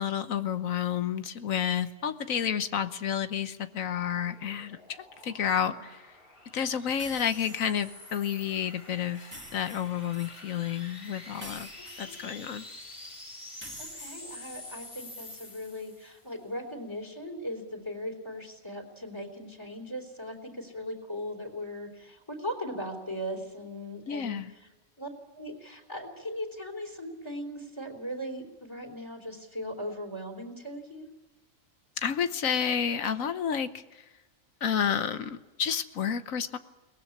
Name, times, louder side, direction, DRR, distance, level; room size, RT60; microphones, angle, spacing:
voice 1, 0.0-6.0 6.5-11.7 12.0-12.6 24.1-24.5 32.0-34.0 34.6-36.6, left 8 dB, 80° left, 11 dB, 1.4 m, -30 dB
sound 1, 3.7-16.3, left 2 dB, 40° left, 3.0 m, -47 dB
sound 2, 7.0-7.9 9.1-10.3 11.3-12.7 13.6-14.9, right 1 dB, 10° right, 2.2 m, -48 dB
voice 2, 13.8-24.4 25.0-25.1 25.4-31.1, equal, 20° left, 3 dB, 3.7 m, -38 dB
22.5 x 19.5 x 8.6 m, 1.1 s
omnidirectional pair, 1.4 m